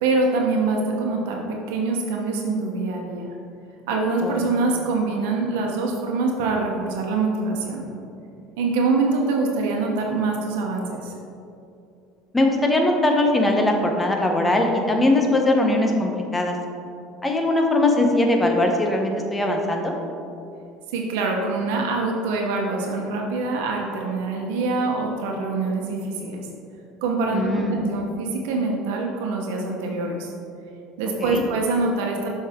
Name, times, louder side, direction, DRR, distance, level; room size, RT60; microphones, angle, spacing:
voice 1, 0.0-3.3 3.9-7.8 8.6-11.1 20.9-26.4 27.0-30.3 31.0-32.3, right 3 dB, 85° right, 0 dB, 1.0 m, -24 dB
voice 2, 4.2-4.6 12.3-16.6 17.2-19.9 27.3-27.8 31.2-31.4, left 2 dB, 15° left, 2 dB, 0.9 m, -21 dB
7.4 x 5.6 x 3.6 m, 2.6 s
supercardioid pair, 120°, 0 cm